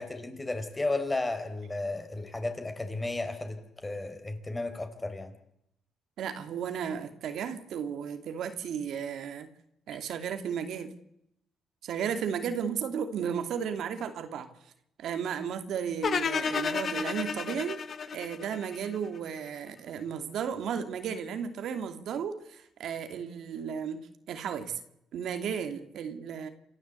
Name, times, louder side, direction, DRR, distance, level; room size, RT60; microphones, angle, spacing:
voice 1, 0.0-5.3, left 2 dB, 20° left, 8 dB, 4.5 m, -33 dB
voice 2, 6.2-9.5 9.9-10.9 11.8-14.5 15.0-17.8 18.1-24.0 24.3-24.8 25.1-26.5, right 7 dB, 75° right, 8 dB, 2.5 m, -34 dB
sound 1, 16.0-19.2, left 6 dB, 50° left, 1.6 m, -32 dB
27.5 x 14.0 x 8.3 m, 0.78 s
cardioid pair, 90°, 0 cm